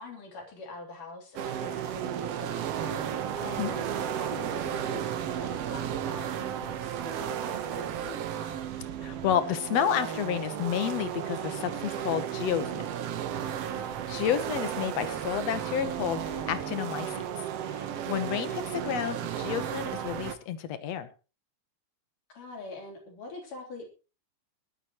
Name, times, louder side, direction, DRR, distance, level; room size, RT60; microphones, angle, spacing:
voice 1, 0.0-2.8 3.3-8.6 13.7-13.9 22.3-23.9, left 3 dB, 90° left, 0 dB, 5.1 m, -44 dB
sound 1, 1.4-20.4, right 9 dB, 65° right, 1.8 m, -34 dB
voice 2, 9.0-12.9 14.1-17.4 17.7-21.1, left 9 dB, 65° left, 11 dB, 2.0 m, -30 dB
20.0 x 12.0 x 3.0 m, 0.33 s
omnidirectional pair, 3.6 m